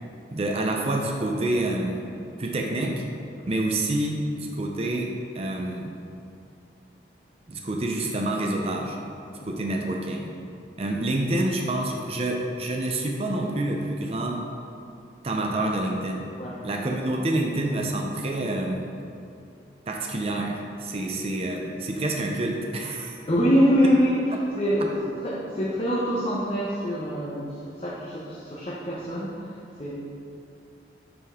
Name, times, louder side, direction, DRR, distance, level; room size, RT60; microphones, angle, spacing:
voice 1, 0.3-2.0 2.4-3.0 3.5-5.9 7.5-9.0 9.4-10.3 10.8-14.4 15.2-16.3 16.6-18.9 19.9-23.2, right 1 dB, 35° right, 1 dB, 0.5 m, -27 dB
voice 2, 23.3-24.9 25.2-29.9, equal, 30° left, -6 dB, 0.8 m, -25 dB
6.9 x 5.1 x 3.7 m, 2.6 s
head